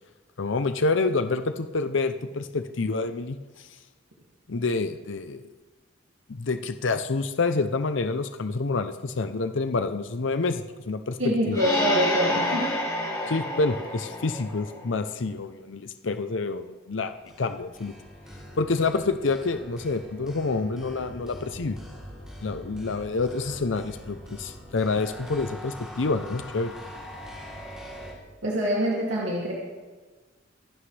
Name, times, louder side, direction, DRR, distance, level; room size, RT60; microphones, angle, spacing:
voice 1, 0.4-3.7 4.5-5.4 6.3-11.2 11.5-11.6 13.3-17.1 17.4-17.9 18.6-21.8 22.4-26.7, left 3 dB, 70° left, 9 dB, 0.7 m, -28 dB
voice 2, 11.2-12.7 28.4-29.5, equal, 70° right, -5 dB, 2.6 m, -25 dB
sound 1, 11.5-15.1, left 1 dB, 15° left, 2.3 m, -29 dB
sound 2, 17.1-28.1, equal, 5° right, 3.4 m, -43 dB
24.5 x 11.5 x 3.4 m, 1.4 s
head